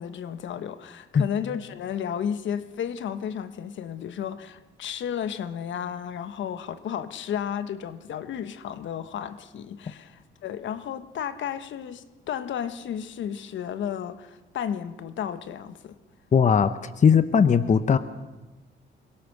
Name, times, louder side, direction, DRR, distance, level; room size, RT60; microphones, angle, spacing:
voice 1, 0.0-15.9, left 8 dB, 70° left, 1.3 m, -33 dB
voice 2, 16.3-18.0, left 6 dB, 40° left, 0.9 m, -19 dB
23.0 x 17.5 x 6.6 m
cardioid pair, 90°, 20 cm